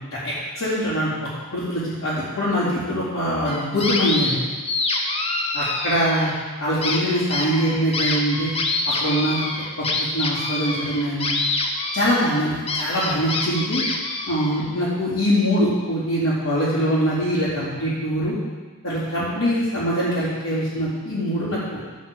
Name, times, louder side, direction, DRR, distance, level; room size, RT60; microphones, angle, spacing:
voice 1, 0.1-1.1 1.5-4.4 5.5-6.3 6.6-8.5 8.8-9.4 9.8-11.3 11.9-13.8 14.3-18.3 18.8-21.8, equal, 70° left, -13 dB, 4.4 m, -23 dB
sound 1, 3.5-4.4 4.7-6.4 6.8-14.6, left 3 dB, 30° left, 1.1 m, -26 dB
13.0 x 6.3 x 7.5 m, 1.4 s
head